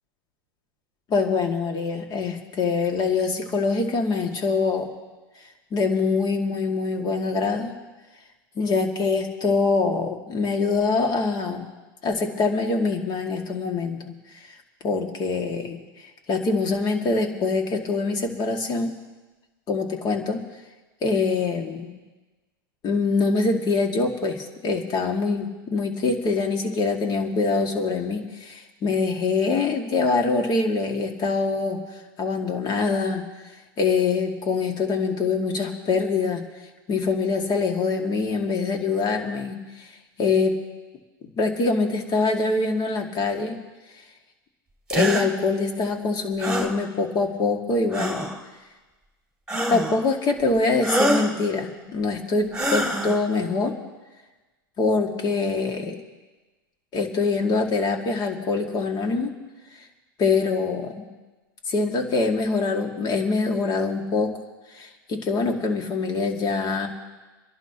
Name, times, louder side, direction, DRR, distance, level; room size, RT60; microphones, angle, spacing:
voice 1, 1.1-4.9 5.7-7.8 8.6-11.7 12.0-14.5 14.8-15.8 16.3-18.9 19.7-20.4 21.0-21.9 22.8-31.8 32.2-33.2 33.8-36.4 36.9-39.9 40.2-40.6 41.4-43.6 44.9-48.3 49.7-53.7 54.8-56.0 56.9-59.4 60.2-61.0 61.7-64.4 64.7-66.9, left 4 dB, 35° left, 3 dB, 2.3 m, -24 dB
sound 1, 44.9-45.3 46.4-46.7 47.9-48.4 49.5-50.0 50.8-51.3 52.5-53.2, right 1 dB, 5° right, 2.5 m, -25 dB
29.5 x 11.5 x 3.0 m, 1.2 s
hypercardioid pair, 105°, 12 cm